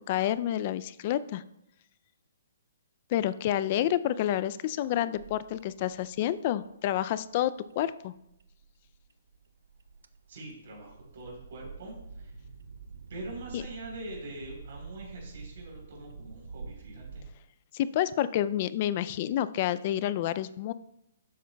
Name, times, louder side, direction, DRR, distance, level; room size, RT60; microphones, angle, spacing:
voice 1, 0.1-1.4 3.1-8.1 13.5-13.6 17.7-20.7, left 12 dB, 35° left, 16 dB, 0.3 m, -29 dB
sound 1, 5.1-17.3, right 4 dB, 80° right, 0.6 m, -47 dB
voice 2, 10.3-12.3 13.1-17.3, right 2 dB, 55° right, -1 dB, 3.7 m, -44 dB
12.0 x 8.5 x 2.3 m, 0.81 s
hypercardioid pair, 165°, 0 cm